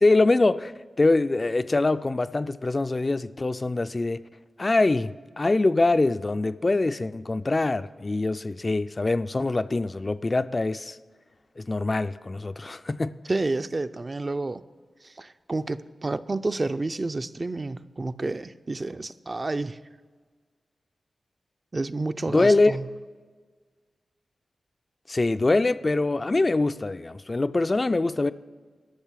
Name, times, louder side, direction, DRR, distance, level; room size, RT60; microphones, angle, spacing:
voice 1, 0.0-4.3 4.6-11.0 11.6-13.2 22.3-22.7 25.1-28.3, left 2 dB, 35° left, 0.3 m, -24 dB
voice 2, 13.3-14.6 15.0-19.8 21.7-22.9, right 2 dB, 35° right, 0.4 m, -30 dB
13.0 x 6.2 x 7.4 m
wide cardioid pair, 80°, 0 cm